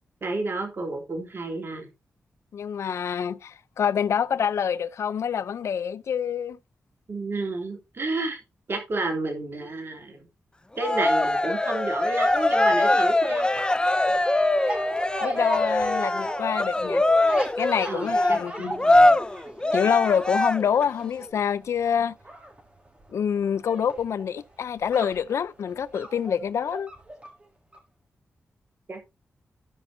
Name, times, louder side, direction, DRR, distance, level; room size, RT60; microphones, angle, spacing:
voice 1, 0.2-1.9 7.1-8.4 8.7-10.3 10.8-13.5 17.8-19.2 28.9-29.1, right 2 dB, 50° right, 3.1 m, -31 dB
voice 2, 2.5-6.6 15.2-17.0 17.6-18.7 19.7-22.2 23.1-26.9, left 7 dB, 75° left, 0.5 m, -26 dB
Cheering, 10.8-20.8, left 2 dB, 20° left, 0.9 m, -22 dB
sound 1, 12.2-27.4 27.7-27.8, right 1 dB, 25° right, 3.6 m, -37 dB
15.5 x 5.3 x 2.7 m
cardioid pair, 55°, 5 cm